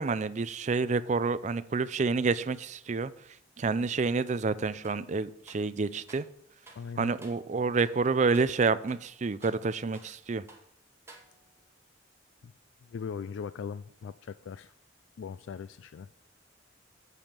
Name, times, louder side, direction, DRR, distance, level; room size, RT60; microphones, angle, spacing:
voice 1, 0.0-3.1 3.6-6.3 7.0-10.4, right 4 dB, 35° right, 14 dB, 0.4 m, -28 dB
sound 1, 4.8-5.1 5.5-6.3 6.7-6.9 7.2-7.5 7.8-8.0 8.3-8.6 8.9-10.2 10.5-10.7 11.1-11.6, right 2 dB, 15° right, 1.0 m, -55 dB
voice 2, 6.7-7.1 10.0-10.1 12.4-12.5 12.9-14.7 15.2-16.1, left 6 dB, 65° left, 15 dB, 0.3 m, -39 dB
8.3 x 5.3 x 7.3 m, 0.65 s
head